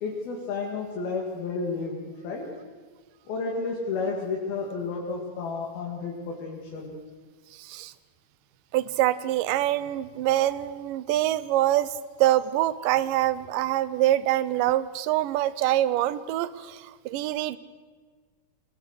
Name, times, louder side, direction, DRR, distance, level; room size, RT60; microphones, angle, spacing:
voice 1, 0.0-2.5 3.3-7.0, left 4 dB, 90° left, -1 dB, 4.2 m, -31 dB
voice 2, 7.6-7.9 8.7-11.9 12.2-17.6, right 14 dB, 75° right, 16 dB, 2.3 m, -25 dB
22.5 x 20.5 x 6.6 m, 1.5 s
omnidirectional pair, 4.2 m